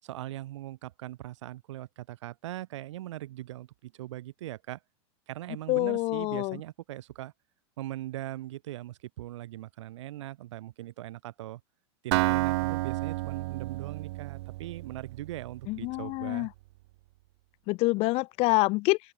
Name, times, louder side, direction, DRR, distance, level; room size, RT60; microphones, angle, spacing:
voice 1, 0.0-4.8 5.3-7.3 7.8-11.6 12.0-16.5, right 15 dB, 85° right, 5.7 m, -40 dB
voice 2, 5.7-6.6 15.7-16.5 17.7-19.0, left 23 dB, 45° left, 1.0 m, -26 dB
Acoustic guitar, 12.1-16.0, right 20 dB, 70° right, 2.4 m, -31 dB
open air
supercardioid pair, 150°, 15 cm